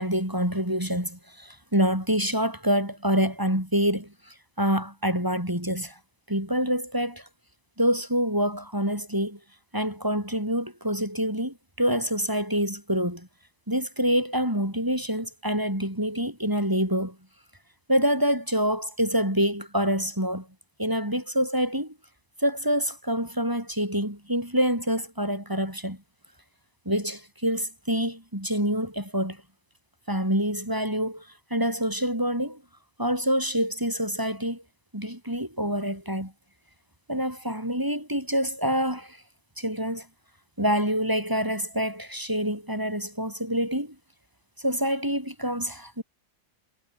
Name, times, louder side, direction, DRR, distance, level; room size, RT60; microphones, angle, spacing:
voice 1, 0.0-6.0 6.3-7.3 7.8-9.4 9.7-13.3 13.7-17.2 17.9-20.5 20.8-21.9 22.4-26.0 26.8-29.4 30.1-32.6 33.0-34.6 34.9-36.3 37.1-39.2 39.6-40.1 40.6-43.9 44.6-46.0, equal, 15° right, 6.6 m, -26 dB
omnidirectional pair, 1.3 m